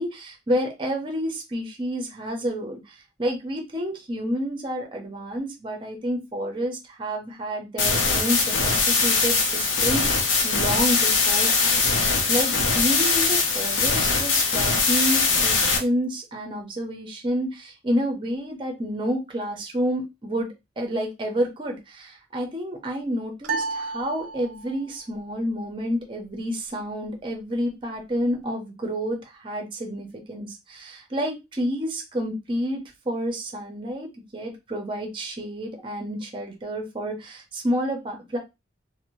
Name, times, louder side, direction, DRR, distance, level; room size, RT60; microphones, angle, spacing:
voice 1, 0.0-20.5 20.8-38.4, equal, 25° right, 3 dB, 0.6 m, -29 dB
sound 1, 7.8-15.8, left 4 dB, 80° left, 0.7 m, -21 dB
sound 2, 23.4-24.9, right 4 dB, 85° right, 0.4 m, -31 dB
2.6 x 2.1 x 3.0 m, 0.23 s
head